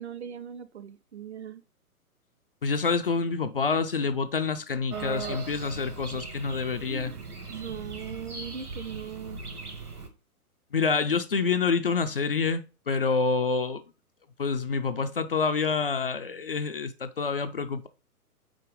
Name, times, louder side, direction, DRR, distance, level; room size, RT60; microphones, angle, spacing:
voice 1, 0.0-1.6 6.9-7.2 7.5-9.4, right 8 dB, 50° right, 0.6 m, -39 dB
voice 2, 2.6-7.1 10.7-13.8 14.4-17.9, left 4 dB, 40° left, 0.4 m, -27 dB
sound 1, 4.9-10.1, right 4 dB, 75° right, 1.6 m, -39 dB
5.0 x 4.3 x 4.8 m
figure-of-eight pair, 120°, 45 cm